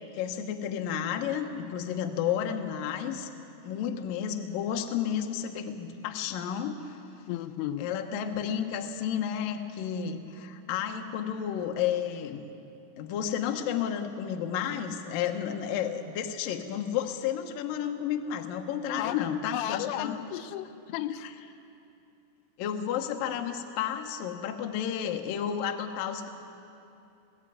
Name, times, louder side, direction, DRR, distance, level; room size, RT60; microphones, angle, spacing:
voice 1, 0.1-3.3 3.6-6.9 7.8-12.4 13.0-20.2 21.2-21.3 22.6-26.3, left 9 dB, 70° left, 5 dB, 2.3 m, -32 dB
voice 2, 7.3-7.9 19.0-21.2, left 12 dB, 90° left, 10 dB, 3.0 m, -34 dB
20.0 x 15.5 x 9.2 m, 2.8 s
omnidirectional pair, 5.2 m